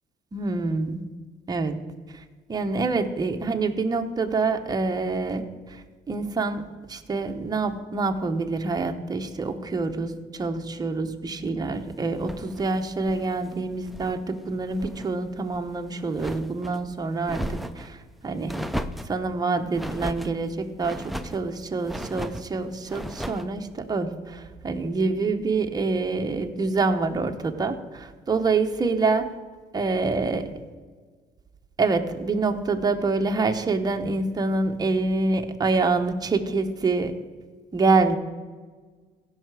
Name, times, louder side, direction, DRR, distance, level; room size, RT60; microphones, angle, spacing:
voice 1, 0.3-1.0 1.5-1.8 2.1-2.2 2.5-18.6 19.0-29.3 29.7-30.5 31.8-37.1 37.7-38.2, right 3 dB, 25° right, 5 dB, 1.0 m, -26 dB
sound 1, 12.1-14.2 14.5-15.1 15.5-16.8 17.2-17.9 18.5-19.2 19.7-20.3 20.8-21.4 21.8-22.5 22.9-23.5, equal, ahead, 0.5 m, -35 dB
16.0 x 5.7 x 4.8 m, 1.5 s
cardioid pair, 110°, 17 cm